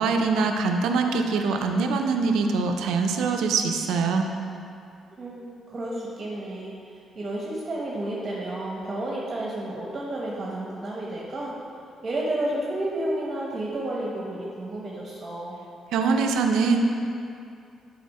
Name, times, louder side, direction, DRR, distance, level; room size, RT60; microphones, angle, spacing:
voice 1, 0.0-4.3 15.9-16.8, right 4 dB, 85° right, 4 dB, 0.5 m, -23 dB
voice 2, 5.2-11.5 12.0-15.5, right 1 dB, 35° right, -4 dB, 1.1 m, -31 dB
7.6 x 4.2 x 4.2 m, 2.5 s
cardioid pair, 90°, 0 cm